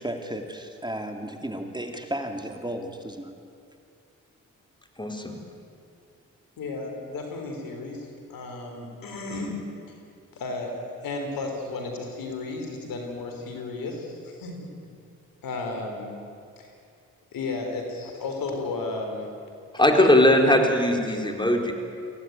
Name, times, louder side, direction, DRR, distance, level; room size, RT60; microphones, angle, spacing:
voice 1, 0.0-3.3, right 1 dB, 15° right, 4 dB, 2.6 m, -34 dB
voice 2, 5.0-5.4 19.7-21.7, left 1 dB, 15° left, 3 dB, 4.1 m, -20 dB
voice 3, 6.6-9.6 10.3-14.7 15.4-16.1 16.6-16.7 17.3-19.3 19.8-19.9, left 3 dB, 80° left, 3 dB, 4.0 m, -33 dB
24.0 x 16.0 x 9.4 m, 2.4 s
supercardioid pair, 50°, 34 cm